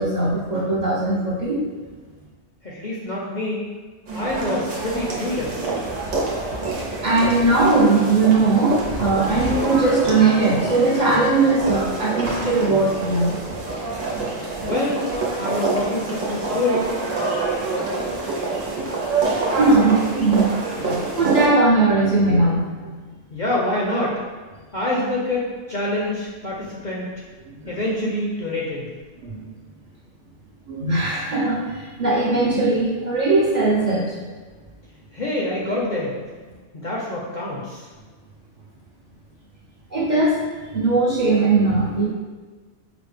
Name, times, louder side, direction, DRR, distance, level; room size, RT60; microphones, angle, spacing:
voice 1, 0.0-1.6 7.0-13.4 14.2-14.3 19.6-22.9 27.6-27.7 29.2-29.4 30.7-34.1 39.9-40.4 40.7-42.1, right 3 dB, 50° right, -6 dB, 0.6 m, -19 dB
voice 2, 2.6-3.6 4.1-5.7 14.6-15.0 15.4-16.9 23.3-24.2 24.7-27.1 27.7-28.9 35.1-36.2 36.7-37.9, left 1 dB, 55° left, -5 dB, 0.6 m, -26 dB
sound 1, 4.1-21.5, right 3 dB, 90° right, 1.1 m, -27 dB
4.9 x 2.0 x 3.2 m, 1.4 s
omnidirectional pair, 1.3 m